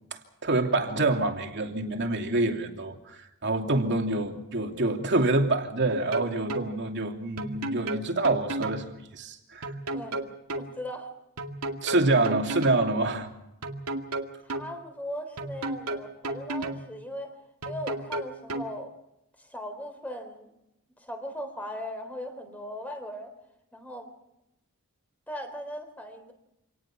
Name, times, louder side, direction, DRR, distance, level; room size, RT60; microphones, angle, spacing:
voice 1, 0.1-9.7 11.8-13.3, right 2 dB, 50° right, 2.8 m, -27 dB
sound 1, 5.9-6.7 7.4-8.8 9.6-10.7 11.4-12.8 13.6-14.7 15.4-16.8 17.6-18.7, right 2 dB, 85° right, 2.2 m, -32 dB
voice 2, 9.9-10.2 10.6-11.1 14.4-17.4 17.6-18.9 19.4-20.5 21.0-23.3 23.7-24.1 25.3-26.3, equal, 5° left, 3.7 m, -38 dB
27.0 x 19.0 x 6.1 m
head